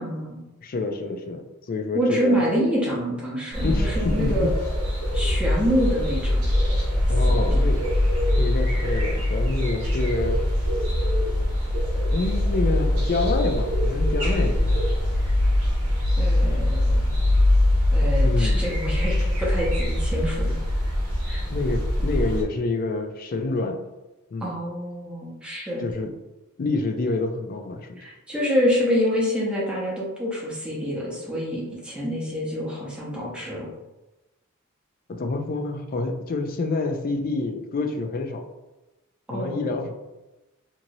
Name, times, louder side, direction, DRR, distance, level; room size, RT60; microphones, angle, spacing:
voice 1, 0.0-0.4 1.9-4.5 5.1-6.4 7.3-7.6 16.2-17.2 17.9-19.1 19.4-20.6 21.3-21.4 24.4-25.8 28.0-33.7 39.3-39.7, equal, 5° right, -6 dB, 0.7 m, -26 dB
voice 2, 0.6-2.4 3.6-4.5 7.1-7.8 8.4-10.4 12.1-14.8 18.2-18.6 21.5-23.8 24.3-24.5 25.8-26.1 26.6-28.0 35.1-38.4 39.3-39.9, left 3 dB, 40° left, 4 dB, 0.3 m, -27 dB
sound 1, 3.5-22.4, left 1 dB, 70° right, 0.8 m, -22 dB
2.9 x 2.7 x 2.6 m, 1.0 s
head